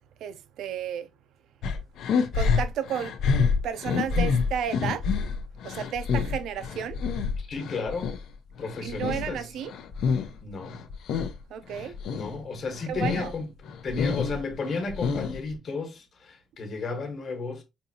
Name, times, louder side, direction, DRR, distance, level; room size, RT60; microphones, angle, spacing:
voice 1, 0.2-1.1 2.3-3.1 3.6-5.1 5.6-7.0 8.8-9.7 11.5-11.9 12.9-13.3, right 8 dB, 70° right, 0.4 m, -32 dB
sound 1, 1.6-8.2 8.6-10.4 10.6-11.4 11.7-12.3 12.7-13.3 13.7-15.5, left 5 dB, 70° left, 0.5 m, -28 dB
voice 2, 7.4-8.1 8.6-9.5 10.4-10.8 11.7-17.6, left 4 dB, 40° left, 1.2 m, -33 dB
5.2 x 2.7 x 2.7 m
cardioid pair, 165°, 0 cm